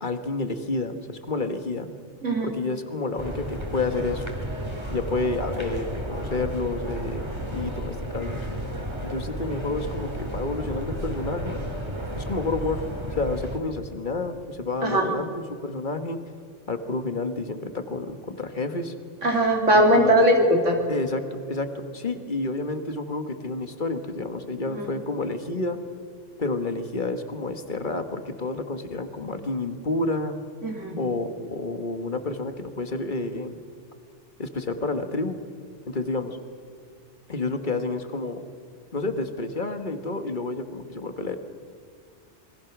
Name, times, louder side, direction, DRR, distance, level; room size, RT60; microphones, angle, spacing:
voice 1, 0.0-1.9 2.4-4.3 4.9-8.5 9.0-11.6 12.2-12.8 13.2-16.2 16.7-18.9 19.7-20.3 20.9-25.8 26.4-30.4 31.0-33.6 34.4-35.3 35.9-36.4 37.3-38.4 38.9-41.4, left 3 dB, 40° left, 8 dB, 1.7 m, -30 dB
voice 2, 2.2-2.5 14.8-15.1 19.2-20.8 24.7-24.9 30.6-31.0, right 1 dB, 80° right, 2 dB, 3.1 m, -20 dB
sound 1, 3.2-13.6, equal, 20° right, 2.7 m, -32 dB
26.5 x 22.0 x 6.1 m, 2.2 s
omnidirectional pair, 1.2 m